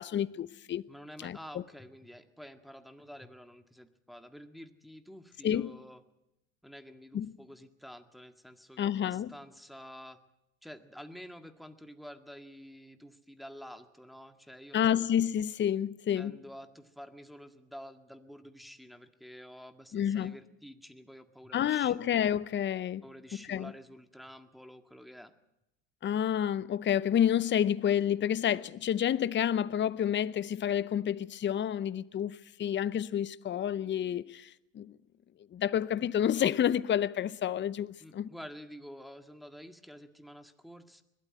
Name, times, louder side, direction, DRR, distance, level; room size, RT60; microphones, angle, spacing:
voice 1, 0.0-0.8 1.2-1.4 5.4-5.7 7.1-7.3 8.8-9.3 14.7-16.3 19.9-20.3 21.5-23.0 23.5-23.7 26.0-35.0 35.5-38.3, left 9 dB, 30° left, 0.7 m, -29 dB
voice 2, 0.9-6.0 6.6-10.2 10.6-15.0 16.2-22.0 23.0-25.3 38.0-41.0, equal, ahead, 1.8 m, -49 dB
21.5 x 13.0 x 9.7 m
hypercardioid pair, 85°, 35 cm